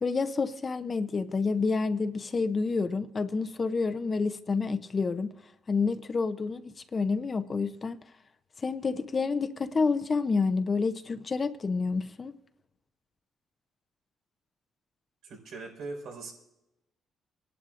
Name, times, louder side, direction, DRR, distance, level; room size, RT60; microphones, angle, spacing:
voice 1, 0.0-5.3 5.7-8.0 8.6-12.3, left 4 dB, 35° left, 0.6 m, -29 dB
voice 2, 15.2-16.3, right 3 dB, 85° right, 4.7 m, -40 dB
27.0 x 11.0 x 2.5 m
cardioid pair, 95°, 0 cm